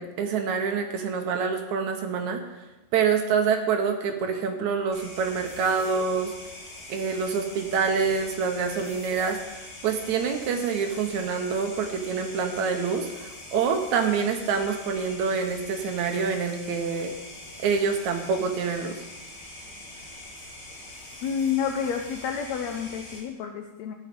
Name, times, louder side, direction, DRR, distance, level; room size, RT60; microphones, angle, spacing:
voice 1, 0.0-2.4 2.9-6.3 6.9-17.1 17.6-19.0, right 5 dB, 70° right, 5 dB, 2.2 m, -26 dB
sound 1, 4.9-23.2, left 1 dB, 40° left, 3.7 m, -43 dB
voice 2, 21.2-23.9, left 7 dB, 75° left, 5 dB, 1.7 m, -29 dB
12.5 x 9.2 x 5.2 m, 1.1 s
omnidirectional pair, 3.8 m